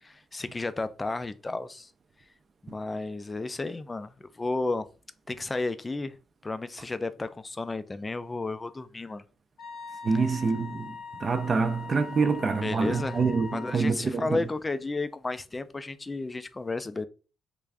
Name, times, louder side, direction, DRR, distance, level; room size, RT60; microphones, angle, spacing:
voice 1, 0.0-1.9 2.6-4.9 5.3-6.2 6.4-9.2 12.5-13.2 13.5-17.1, left 3 dB, 20° left, 0.4 m, -33 dB
Wind instrument woodwind instrument, 9.6-13.8, left 5 dB, 75° left, 0.9 m, -42 dB
voice 2, 10.0-14.4, right 4 dB, 40° right, 0.5 m, -26 dB
3.2 x 2.4 x 3.4 m
cardioid pair, 90°, 0 cm